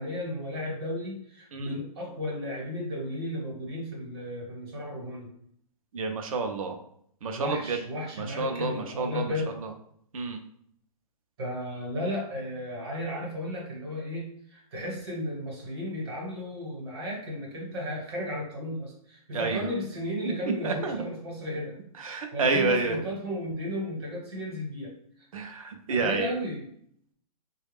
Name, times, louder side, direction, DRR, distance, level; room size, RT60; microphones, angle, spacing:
voice 1, 0.0-5.3 7.3-9.5 11.4-21.8 22.3-24.9 25.9-26.6, left 1 dB, 40° right, -2 dB, 1.1 m, -34 dB
voice 2, 5.9-6.7 7.2-7.8 8.2-9.3 10.1-10.4 19.3-19.6 20.6-21.0 22.0-23.1 25.3-26.3, right 4 dB, 60° right, 5 dB, 0.6 m, -29 dB
3.2 x 2.3 x 3.4 m, 0.67 s
hypercardioid pair, 175°, 20 cm